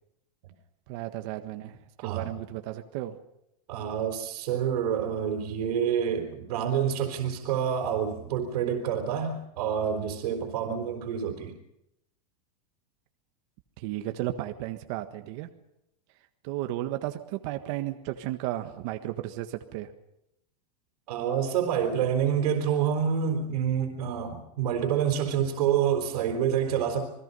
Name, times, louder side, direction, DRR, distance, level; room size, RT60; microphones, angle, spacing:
voice 1, 0.9-3.2 13.8-15.5 16.4-19.9, right 15 dB, 50° right, 7 dB, 1.5 m, -34 dB
voice 2, 3.7-11.5 21.1-27.1, right 8 dB, 75° right, 2 dB, 4.3 m, -27 dB
28.5 x 20.5 x 5.6 m, 0.82 s
supercardioid pair, 160°, 21 cm